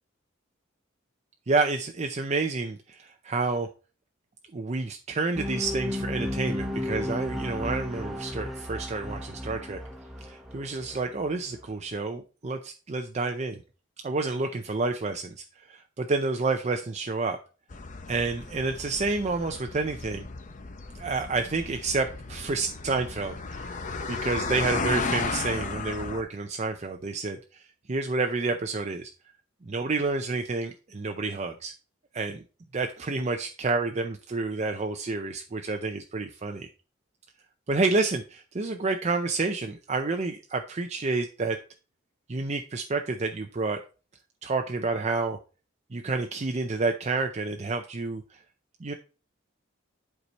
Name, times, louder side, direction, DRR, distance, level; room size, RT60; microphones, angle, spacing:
voice 1, 1.5-3.7 4.5-9.8 10.2-13.6 14.0-17.4 18.1-20.2 20.9-23.8 24.1-29.1 29.6-31.7 32.1-32.4 32.7-36.7 37.7-41.6 42.3-43.8 44.4-45.4 45.9-48.4 48.8-48.9, right 3 dB, 35° right, 5 dB, 0.5 m, -29 dB
sound 1, 5.3-11.7, left 1 dB, ahead, 1.2 m, -34 dB
sound 2, 17.7-26.2, left 4 dB, 40° left, 0.7 m, -34 dB
8.2 x 4.7 x 4.1 m, 0.34 s
head